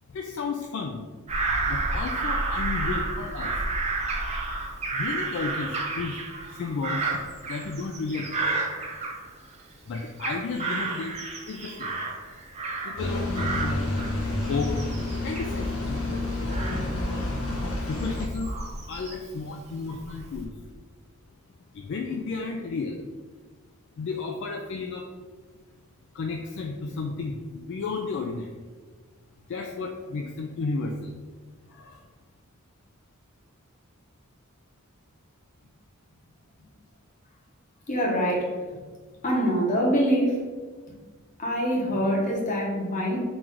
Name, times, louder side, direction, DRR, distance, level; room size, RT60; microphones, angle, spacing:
voice 1, 0.1-1.1 1.6-3.7 4.9-6.2 6.5-7.1 7.4-8.6 9.9-12.0 12.8-13.8 14.5-14.8 15.2-16.3 17.8-18.5 18.9-20.5 21.7-23.1 24.0-25.1 26.1-28.5 29.5-31.2 31.7-32.0, left 4 dB, 55° left, 2 dB, 0.3 m, -33 dB
Bird vocalization bird call bird song / Crow, 1.3-9.6 9.9-13.1 13.3-19.4 19.9-20.5, right 3 dB, 30° right, 0.6 m, -31 dB
sound 1, 13.0-18.3, left 2 dB, 80° left, 0.7 m, -29 dB
voice 2, 37.9-38.6 39.2-40.4 41.4-43.2, equal, 35° left, -2 dB, 0.9 m, -24 dB
3.9 x 2.5 x 4.5 m, 1.5 s
head